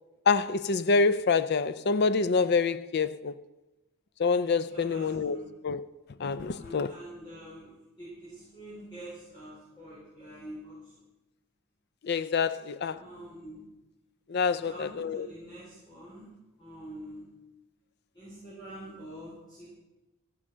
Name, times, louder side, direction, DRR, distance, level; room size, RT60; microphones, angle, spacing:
voice 1, 0.3-3.3 4.2-5.4 5.6-5.8 6.2-6.9 12.1-13.0 14.3-14.7 15.0-15.3, left 4 dB, 45° left, 0.4 m, -26 dB
voice 2, 4.7-5.4 6.5-7.7 8.0-10.9 12.9-13.6 14.5-16.3 16.6-17.3 18.1-19.8, right 1 dB, 20° left, 5.1 m, -46 dB
15.5 x 9.8 x 6.2 m
head